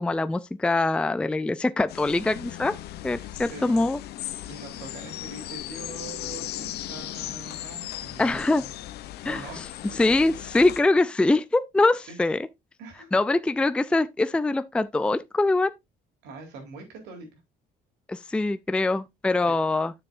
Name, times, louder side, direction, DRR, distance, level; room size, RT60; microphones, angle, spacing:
voice 1, 0.0-2.7 3.0-4.0 8.2-8.6 9.2-9.4 10.0-12.4 13.1-15.7 18.1-19.9, left 2 dB, 5° left, 0.4 m, -23 dB
sound 1, 1.9-10.8, left 13 dB, 75° left, 0.7 m, -37 dB
voice 2, 3.1-3.9 4.4-8.7 9.3-9.8 10.4-10.5 12.1-12.2 12.8-13.1 16.2-17.4 19.4-19.6, right 4 dB, 85° right, 3.8 m, -43 dB
9.6 x 7.0 x 2.6 m
cardioid pair, 110°, 17 cm